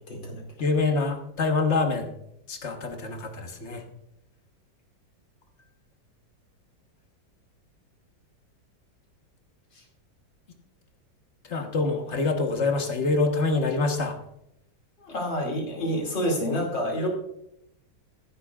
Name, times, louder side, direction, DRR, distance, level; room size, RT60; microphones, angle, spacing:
voice 1, 0.1-0.4 9.7-9.8 15.0-17.1, equal, 75° left, -1 dB, 3.3 m, -28 dB
voice 2, 0.6-2.1 2.5-3.8 11.4-14.2, left 3 dB, 40° left, 4 dB, 1.4 m, -25 dB
15.5 x 10.5 x 2.4 m, 0.81 s
omnidirectional pair, 2.0 m